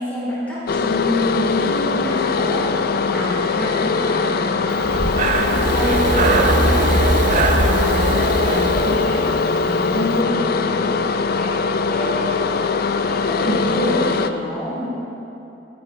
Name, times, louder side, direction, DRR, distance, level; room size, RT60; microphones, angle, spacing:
voice 1, 0.0-4.9 5.3-11.0 11.4-11.5 11.9-12.3 13.0-14.8, equal, 10° left, -11 dB, 3.0 m, -27 dB
sound 1, 0.7-14.3, left 4 dB, 50° left, 0.4 m, -21 dB
Breathing, 4.8-9.7, right 2 dB, 40° right, 0.6 m, -20 dB
15.5 x 10.5 x 3.1 m, 2.9 s
head